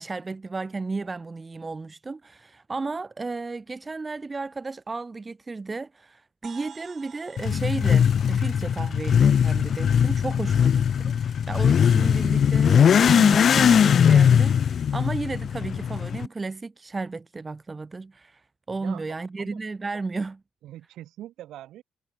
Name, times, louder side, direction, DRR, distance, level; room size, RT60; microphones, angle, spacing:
voice 1, 0.0-18.4 18.7-20.4, right 3 dB, 25° right, 0.7 m, -33 dB
sound 1, 6.4-10.2, right 7 dB, 45° right, 7.5 m, -50 dB
Motorcycle / Accelerating revving vroom, 7.4-16.3, left 8 dB, 50° left, 0.5 m, -20 dB
voice 2, 18.8-19.6 20.6-21.8, right 13 dB, 80° right, 2.5 m, -43 dB
cardioid pair, 105°, 0 cm